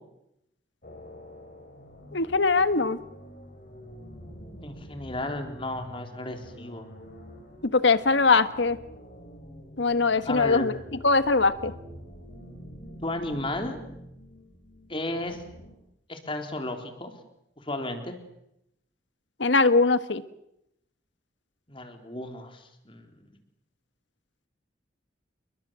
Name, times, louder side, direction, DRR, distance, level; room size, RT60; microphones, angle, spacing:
sound 1, 0.8-15.7, equal, 50° left, 5.5 m, -46 dB
voice 1, 2.1-3.0 7.6-8.8 9.8-10.8 11.0-11.7 19.4-20.2, left 3 dB, 75° left, 13 dB, 1.4 m, -21 dB
voice 2, 4.6-6.8 10.3-10.8 13.0-13.8 14.9-15.4 16.1-17.1 17.6-18.2 21.7-23.3, left 1 dB, 30° left, 6 dB, 3.7 m, -34 dB
29.0 x 22.5 x 7.6 m, 0.81 s
head